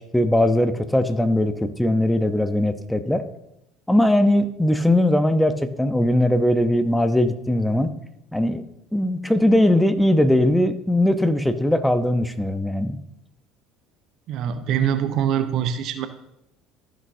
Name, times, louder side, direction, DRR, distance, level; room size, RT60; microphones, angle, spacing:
voice 1, 0.1-3.2 3.9-7.9 8.3-8.6 8.9-13.0, left 1 dB, 5° left, 11 dB, 0.8 m, -20 dB
voice 2, 14.3-16.1, right 9 dB, 50° right, 10 dB, 0.8 m, -23 dB
15.0 x 6.3 x 2.7 m, 0.84 s
figure-of-eight pair, 60°, 0 cm